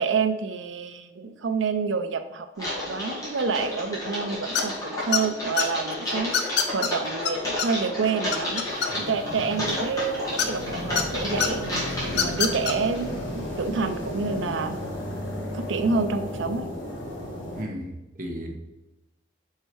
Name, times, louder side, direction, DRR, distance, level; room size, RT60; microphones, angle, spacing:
voice 1, 0.0-8.6 9.0-11.8 12.1-14.8 15.5-16.7, right 5 dB, 80° right, 9 dB, 0.6 m, -28 dB
Typing, 2.5-13.0, left 1 dB, 20° left, 2.4 m, -32 dB
sound 1, 4.5-4.8 5.1-5.6 6.3-6.9 7.2-7.3 7.6-7.7 8.0-9.2 10.4-11.0 11.4-11.5 12.1-12.7, left 7 dB, 60° left, 0.6 m, -24 dB
sound 2, 8.4-17.6, left 1 dB, 80° left, 1.9 m, -34 dB
voice 2, 17.5-18.6, equal, 45° right, 2 dB, 1.0 m, -35 dB
5.5 x 4.9 x 4.6 m, 1.0 s
head